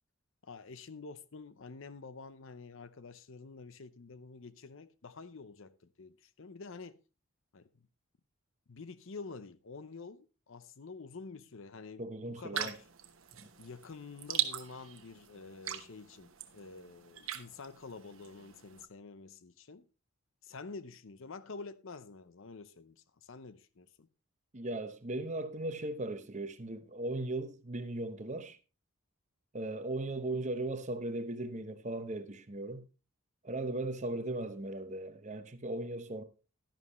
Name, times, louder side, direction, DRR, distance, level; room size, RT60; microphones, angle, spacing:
voice 1, 0.4-7.0 7.5-7.9 8.7-12.8 13.6-19.9 20.4-24.1, left 4 dB, 60° left, 0.7 m, -48 dB
voice 2, 12.0-12.8 13.4-13.5 24.5-28.6 29.5-32.8 33.4-36.2, right 2 dB, 35° right, 0.9 m, -37 dB
sound 1, 12.5-18.8, right 10 dB, 65° right, 1.1 m, -41 dB
12.0 x 11.0 x 3.1 m
head